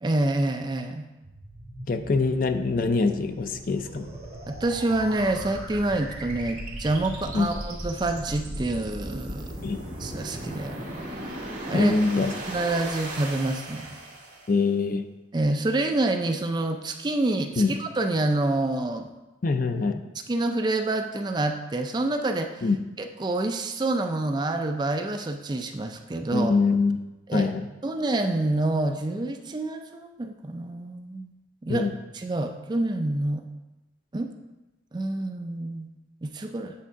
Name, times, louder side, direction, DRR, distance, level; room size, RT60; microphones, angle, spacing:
voice 1, 0.0-1.1 4.5-9.5 10.0-10.8 11.7-11.9 12.5-14.0 15.3-19.1 20.3-22.6 23.0-26.5 27.3-27.5 27.8-31.3 31.6-31.9 32.1-33.4 34.1-34.3 34.9-35.9 36.2-36.7, right 2 dB, 25° right, 5 dB, 0.4 m, -27 dB
sound 1, 1.2-14.6, right 1 dB, 45° right, 1.9 m, -38 dB
voice 2, 1.9-4.1 7.3-7.5 9.6-9.8 11.7-12.3 14.5-15.0 17.6-17.7 19.4-20.0 22.6-22.8 26.3-27.0 27.3-27.7 31.7-31.9, left 3 dB, 50° left, 7 dB, 0.5 m, -24 dB
sound 2, 2.0-7.5, right 1 dB, 5° left, 2.4 m, -44 dB
8.5 x 3.6 x 5.5 m, 1.1 s
head